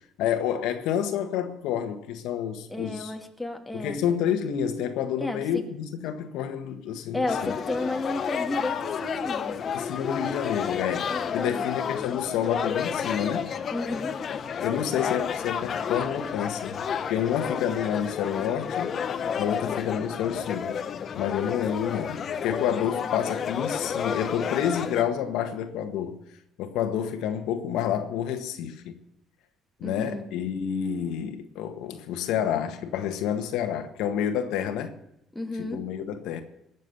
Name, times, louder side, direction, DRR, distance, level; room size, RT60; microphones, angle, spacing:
voice 1, 0.2-3.1 3.7-7.5 9.7-13.5 14.6-19.0 19.4-20.8 21.2-26.2 26.6-29.0 29.8-35.0 35.6-36.4, left 9 dB, 85° left, 1.6 m, -29 dB
voice 2, 2.7-4.0 5.2-5.6 7.1-9.7 10.0-10.2 11.1-11.6 13.7-14.1 29.8-30.2 35.3-35.8, left 2 dB, 5° left, 2.3 m, -33 dB
sound 1, 7.3-25.0, left 7 dB, 45° left, 1.0 m, -31 dB
20.0 x 7.5 x 7.1 m
cardioid pair, 115°, 0 cm